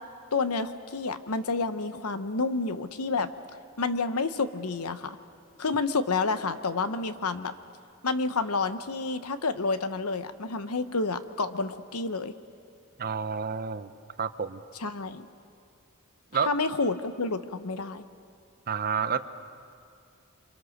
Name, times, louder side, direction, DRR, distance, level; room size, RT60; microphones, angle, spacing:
voice 1, 0.3-3.3 3.8-5.2 5.6-7.5 8.0-12.3 14.8-15.3 16.4-18.0, left 3 dB, 90° left, 11 dB, 1.0 m, -29 dB
voice 2, 13.0-13.9 14.2-14.6 16.3-16.5 18.7-19.2, right 6 dB, 45° right, 12 dB, 0.7 m, -29 dB
28.5 x 25.5 x 6.6 m, 2.4 s
head